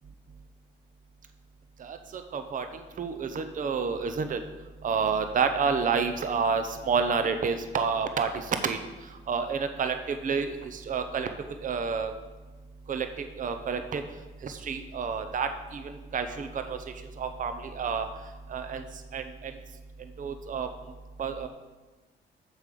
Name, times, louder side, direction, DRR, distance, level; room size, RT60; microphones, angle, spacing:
voice 1, 1.8-2.7 3.0-4.4 4.8-8.8 9.3-11.3 11.6-12.1 12.9-13.1 13.4-14.0 14.4-16.8 17.2-18.1 18.5-18.8 19.1-19.5 20.2-20.7 21.2-21.5, right 5 dB, 40° right, 8 dB, 0.7 m, -29 dB
7.1 x 5.2 x 6.8 m, 1.2 s
cardioid pair, 90°, 20 cm